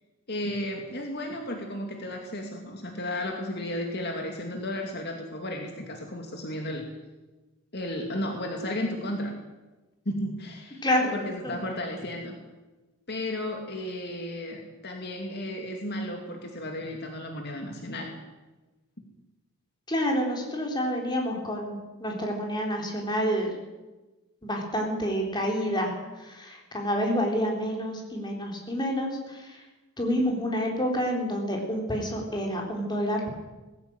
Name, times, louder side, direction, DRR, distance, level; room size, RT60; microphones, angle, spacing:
voice 1, 0.3-6.9 7.7-9.3 10.1-10.8 11.1-12.4 13.1-18.1, left 1 dB, 45° left, 2 dB, 2.5 m, -33 dB
voice 2, 10.8-11.2 11.4-11.5 19.9-23.6 24.4-29.6 30.0-33.2, equal, 20° left, 1 dB, 3.9 m, -28 dB
19.0 x 15.5 x 8.9 m, 1.1 s
head